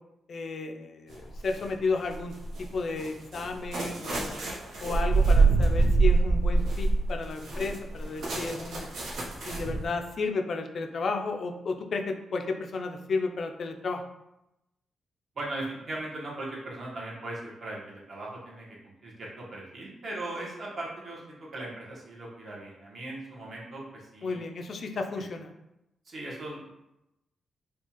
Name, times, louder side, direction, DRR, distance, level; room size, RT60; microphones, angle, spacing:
voice 1, 0.3-4.4 4.8-8.9 9.5-14.1 24.2-25.5, left 3 dB, 45° left, 4 dB, 0.4 m, -33 dB
sound 1, 1.1-1.6 2.1-9.9, right 3 dB, 80° right, 0.9 m, -25 dB
voice 2, 15.3-18.7 19.0-24.4 26.0-26.7, right 2 dB, 45° right, -4 dB, 1.1 m, -38 dB
4.5 x 2.3 x 2.9 m, 0.88 s
wide cardioid pair, 160°, 0 cm